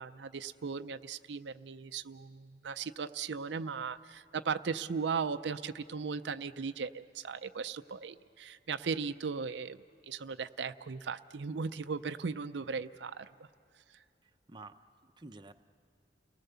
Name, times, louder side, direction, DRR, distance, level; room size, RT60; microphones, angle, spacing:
voice 1, 0.0-13.5, right 5 dB, 75° right, 10 dB, 0.5 m, -37 dB
voice 2, 14.2-15.5, right 2 dB, 25° right, 6 dB, 0.7 m, -51 dB
30.0 x 18.5 x 6.9 m, 2.6 s
head